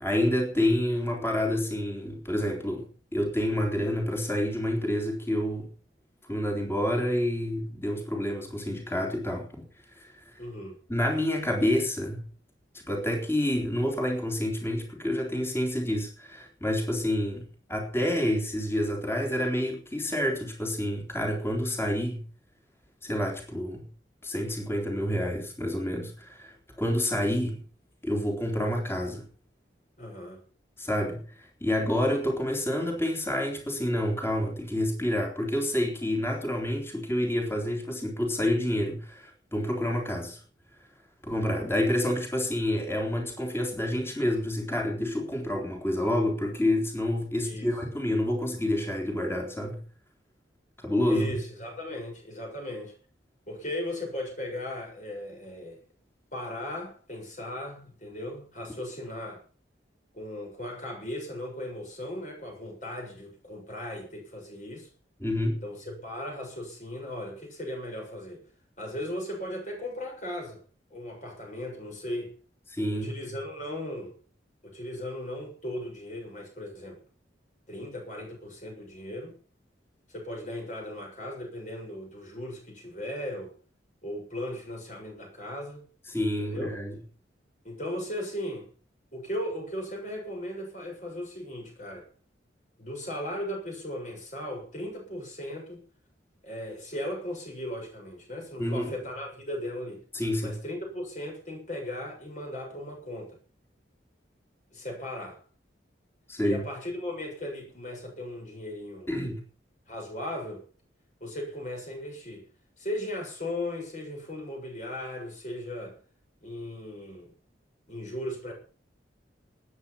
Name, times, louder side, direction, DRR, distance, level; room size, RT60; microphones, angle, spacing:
voice 1, 0.0-2.9 3.1-5.7 6.2-10.4 10.9-12.3 12.9-22.2 23.0-23.9 24.2-27.6 28.0-29.3 30.8-40.4 41.2-49.8 50.8-51.4 65.2-65.6 72.7-73.1 86.1-87.0 98.6-98.9 100.1-100.6 106.3-106.6 109.1-109.4, left 1 dB, 15° left, 3.9 m, -28 dB
voice 2, 10.4-10.8 30.0-30.4 47.4-47.7 51.1-52.9 53.5-55.8 56.3-59.4 60.1-64.9 65.6-68.4 68.8-70.6 70.9-72.3 72.9-74.2 74.6-77.0 77.7-79.3 80.1-83.5 84.0-85.8 86.4-86.8 87.6-88.7 89.1-92.1 92.8-95.8 96.4-100.0 100.4-103.3 104.7-105.4 106.4-109.1 109.9-110.6 111.2-112.4 112.8-116.0 116.4-117.3 117.9-118.5, left 1 dB, 40° left, 7.0 m, -37 dB
19.5 x 10.0 x 5.9 m
head